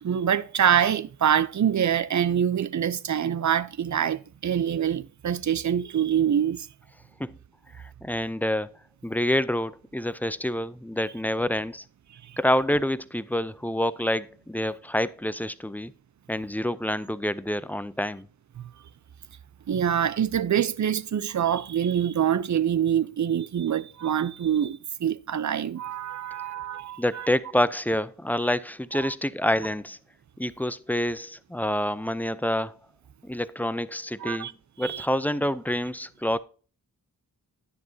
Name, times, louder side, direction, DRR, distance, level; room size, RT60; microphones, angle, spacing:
voice 1, 0.0-6.7 12.2-12.4 18.6-18.7 19.7-27.3 28.9-29.1 34.2-34.5 34.8-35.1, right 9 dB, 55° right, 0.6 m, -25 dB
voice 2, 7.7-8.7 9.0-11.8 12.4-15.9 16.3-18.3 27.0-30.0 30.4-32.8 33.2-34.5 34.8-36.4, left 1 dB, 5° left, 0.4 m, -27 dB
10.5 x 9.8 x 2.7 m
wide cardioid pair, 85°, 34 cm